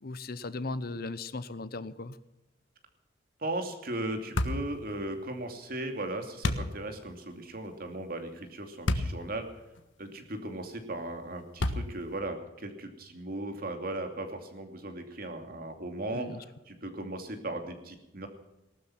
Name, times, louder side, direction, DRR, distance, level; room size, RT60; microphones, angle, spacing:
voice 1, 0.0-2.2 16.1-16.4, left 3 dB, 55° left, 15 dB, 0.8 m, -37 dB
voice 2, 3.4-9.5 10.0-18.3, right 1 dB, 50° right, 5 dB, 2.6 m, -37 dB
sound 1, 4.4-4.7 6.4-6.7 8.9-9.2 9.8-9.9 11.6-12.1, left 1 dB, 85° left, 1.4 m, -28 dB
18.5 x 12.5 x 5.8 m, 0.96 s
head